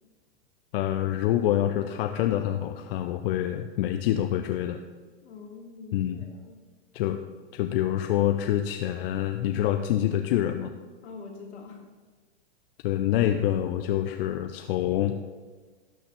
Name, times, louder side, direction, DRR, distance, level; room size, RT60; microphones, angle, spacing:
voice 1, 0.7-4.8 5.9-6.2 6.9-7.2 7.5-10.7 12.8-15.2, left 12 dB, 50° left, 7 dB, 0.7 m, -26 dB
voice 2, 5.2-6.6 11.0-11.8, left 4 dB, 70° left, 1 dB, 2.3 m, -44 dB
12.0 x 4.1 x 7.0 m, 1.4 s
hypercardioid pair, 110°, 35 cm